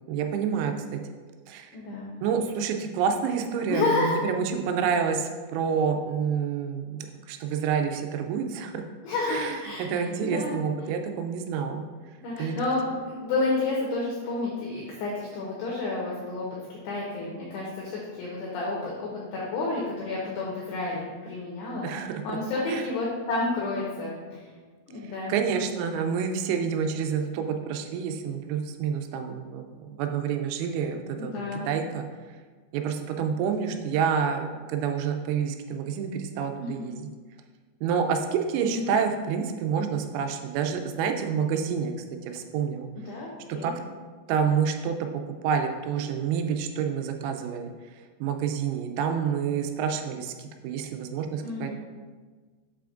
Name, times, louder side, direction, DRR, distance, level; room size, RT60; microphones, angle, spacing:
voice 1, 0.1-1.0 1.5-1.7 2.2-8.8 9.3-11.8 12.4-12.6 21.8-22.1 22.7-22.8 25.3-31.3 31.6-32.1 32.7-37.1 37.8-41.9 42.3-42.9 43.6-43.7 44.3-47.7 48.2-51.7, right 7 dB, 90° right, 5 dB, 3.3 m, -28 dB
voice 2, 1.7-2.1 3.7-4.2 9.0-10.6 12.2-21.9 22.2-24.5 24.9-25.3 31.2-31.7 36.6-36.9 38.6-38.9 42.9-43.7 51.4-51.7, left 3 dB, 90° left, -5 dB, 2.3 m, -30 dB
7.6 x 5.8 x 2.5 m, 1.4 s
omnidirectional pair, 5.9 m